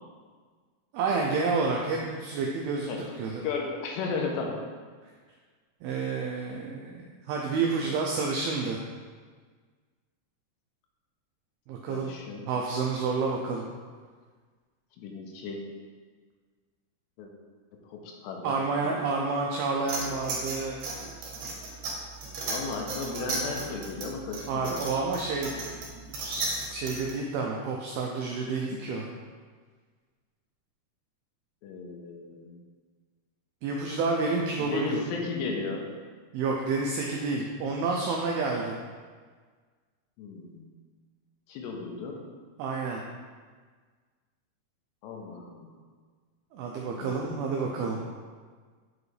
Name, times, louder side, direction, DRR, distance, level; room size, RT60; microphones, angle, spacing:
voice 1, 0.9-3.5 5.8-8.8 11.7-12.1 12.5-13.7 18.4-20.8 24.5-29.1 33.6-35.0 36.3-38.8 42.6-43.0 46.5-48.0, right 4 dB, 85° right, -1 dB, 2.2 m, -29 dB
voice 2, 3.4-4.6 7.9-8.0 11.9-12.4 15.0-15.6 17.2-17.3 17.9-18.5 18.8-19.0 22.5-24.8 31.6-32.5 34.6-35.9 40.2-40.6 41.5-42.2 45.0-45.7 47.0-47.2 47.9-48.0, left 4 dB, 85° left, 1 dB, 2.8 m, -35 dB
sound 1, 19.9-27.1, right 3 dB, 65° right, 2.6 m, -35 dB
7.6 x 4.9 x 3.2 m, 1.5 s
omnidirectional pair, 5.0 m